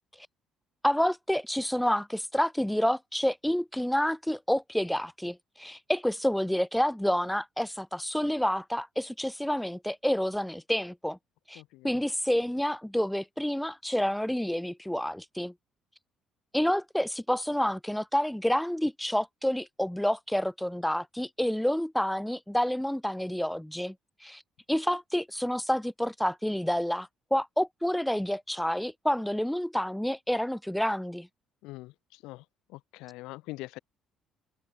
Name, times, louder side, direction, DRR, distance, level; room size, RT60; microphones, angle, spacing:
voice 1, 0.8-11.2 11.5-15.5 16.5-23.9 24.2-24.4 24.7-31.3, equal, 5° left, 0.9 m, -29 dB
voice 2, 11.5-11.9 31.6-32.4 32.7-33.8, left 20 dB, 90° left, 4.8 m, -43 dB
cardioid pair, 95°, 0 cm